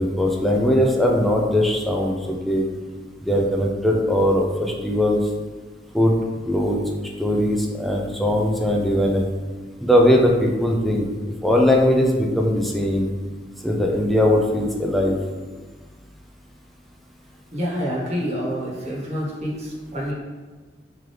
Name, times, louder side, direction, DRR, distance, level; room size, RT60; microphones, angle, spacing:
voice 1, 0.0-2.6 3.2-5.2 5.9-6.2 6.5-6.8 7.2-9.2 9.8-11.0 11.4-13.1 13.6-15.2, left 1 dB, ahead, 0 dB, 0.4 m, -20 dB
voice 2, 17.5-20.1, equal, 40° right, -5 dB, 1.1 m, -27 dB
3.7 x 3.3 x 3.1 m, 1.4 s
head